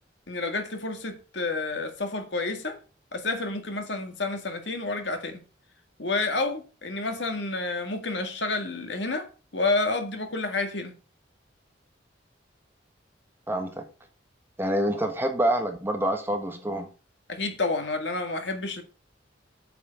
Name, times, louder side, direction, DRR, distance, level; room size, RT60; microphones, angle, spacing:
voice 1, 0.3-2.8 3.1-5.4 6.0-10.9 17.3-18.8, left 3 dB, 65° left, 1.8 m, -29 dB
voice 2, 13.5-13.9 14.6-16.9, right 1 dB, 10° right, 1.5 m, -27 dB
8.6 x 6.9 x 5.2 m
head